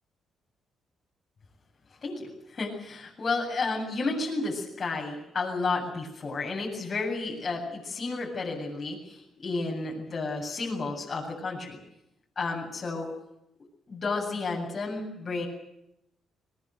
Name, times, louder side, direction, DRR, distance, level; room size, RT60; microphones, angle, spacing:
voice 1, 2.0-11.8 12.4-13.1 13.9-15.5, left 3 dB, 40° left, -2 dB, 7.9 m, -32 dB
21.5 x 21.0 x 9.3 m, 0.84 s
cardioid pair, 90°, 0 cm